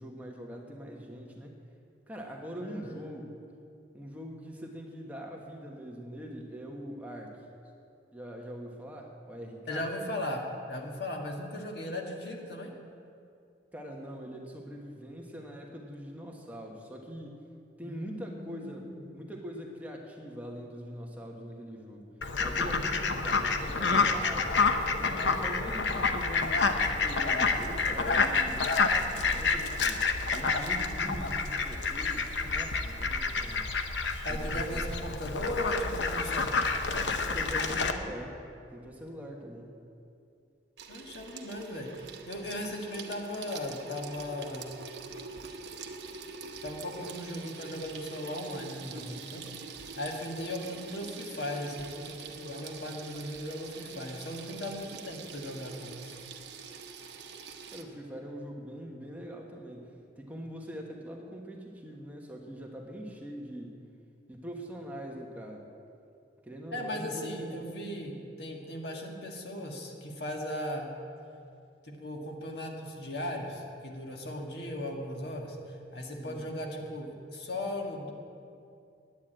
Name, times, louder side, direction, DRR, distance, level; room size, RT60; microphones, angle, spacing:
voice 1, 0.0-1.6 2.1-3.3 3.9-7.4 8.1-9.8 13.7-17.4 17.8-18.9 19.1-22.1 22.4-24.6 25.0-30.0 30.3-33.7 34.3-35.0 37.3-38.4 38.7-39.7 57.7-63.8 64.3-65.7 66.4-67.6 76.2-76.4, equal, 10° right, 0 dB, 1.2 m, -42 dB
voice 2, 2.6-3.2 9.7-12.7 17.8-19.1 30.9-31.4 34.2-36.5 40.9-41.9 42.3-44.7 46.6-49.4 50.0-56.2 66.7-70.9 71.8-78.1, left 1 dB, 65° left, 1 dB, 1.7 m, -37 dB
Fowl, 22.2-37.9, left 4 dB, 80° left, 0.8 m, -28 dB
Water tap faucet / Sink (filling or washing), 40.8-57.8, right 5 dB, 70° right, 1.0 m, -45 dB
9.7 x 9.5 x 8.8 m, 2.5 s
head